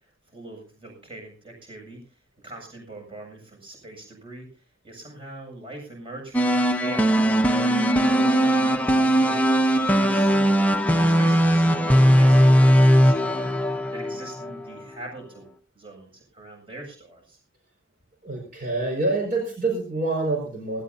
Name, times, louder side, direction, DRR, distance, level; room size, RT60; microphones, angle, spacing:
voice 1, 0.3-10.6 11.1-13.5 13.9-17.4, right 2 dB, 25° right, 1 dB, 7.5 m, -42 dB
sound 1, 6.3-14.5, equal, 10° left, 0.9 m, -19 dB
voice 2, 18.2-20.8, right 2 dB, 45° right, -1 dB, 5.5 m, -26 dB
19.5 x 18.0 x 2.8 m, 0.37 s
head